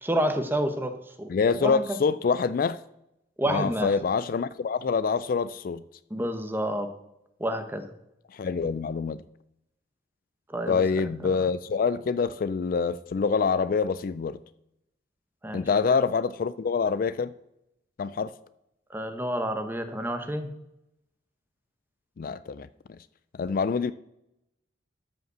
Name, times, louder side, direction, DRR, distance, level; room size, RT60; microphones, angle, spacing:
voice 1, 0.0-1.3 1.6-2.0 3.4-3.9 6.1-6.9 7.4-7.9 10.5-10.8 15.4-15.6 18.9-20.5, right 1 dB, 10° right, 0.9 m, -29 dB
voice 2, 1.3-2.8 3.5-5.8 8.3-9.2 10.7-14.4 15.5-17.3 18.0-18.3 22.2-22.7 23.4-23.9, left 5 dB, 50° left, 0.3 m, -26 dB
12.5 x 5.3 x 6.8 m
head